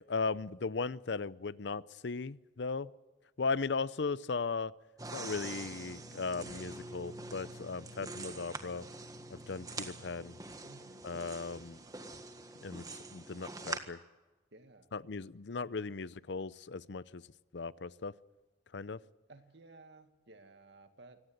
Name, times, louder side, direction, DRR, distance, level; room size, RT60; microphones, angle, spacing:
voice 1, 0.1-2.9 3.4-4.7 5.1-8.8 9.3-10.4 11.0-11.8 12.6-12.8 13.1-14.0 14.9-17.2 17.5-18.1 18.7-19.0, left 4 dB, 70° left, 18 dB, 0.6 m, -37 dB
sound 1, 5.0-13.8, right 3 dB, 20° right, 1.6 m, -45 dB
voice 2, 10.6-11.1 14.5-14.9 19.3-21.2, right 2 dB, 70° right, 7 dB, 2.1 m, -56 dB
25.0 x 18.0 x 8.0 m, 1.2 s
head